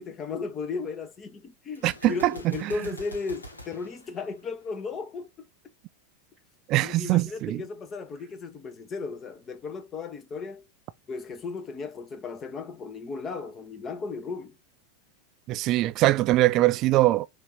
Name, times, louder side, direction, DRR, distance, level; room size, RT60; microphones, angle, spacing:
voice 1, 0.0-5.3 6.8-10.7 11.1-14.6, left 4 dB, 25° left, 1.2 m, -35 dB
Gunshot gunfire, 1.7-4.9, equal, 80° left, 1.4 m, -45 dB
voice 2, 1.8-2.3 2.6-2.7 6.7-7.6 15.5-17.3, right 17 dB, 40° right, 0.4 m, -22 dB
6.7 x 2.9 x 5.0 m
figure-of-eight pair, 85°, 0 cm